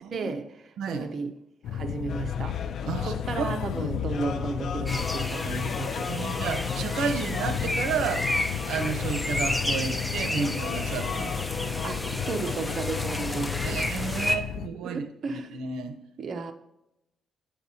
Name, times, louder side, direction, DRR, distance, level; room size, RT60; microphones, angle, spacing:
voice 1, 0.1-1.3 1.7-6.5 11.8-14.4 14.8-15.5 16.2-16.5, right 4 dB, 50° right, 6 dB, 0.7 m, -34 dB
sound 1, 1.6-14.7, left 9 dB, 80° left, 0.3 m, -33 dB
sound 2, 2.1-13.7, left 6 dB, 60° left, 0.8 m, -39 dB
voice 2, 2.9-3.5 6.1-8.3 8.7-11.7 13.6-15.0 15.3-16.0, right 5 dB, 80° right, 8 dB, 0.9 m, -32 dB
sound 3, 4.9-14.4, left 1 dB, 10° left, 0.7 m, -32 dB
8.2 x 7.9 x 2.8 m, 0.82 s
cardioid pair, 90°, 0 cm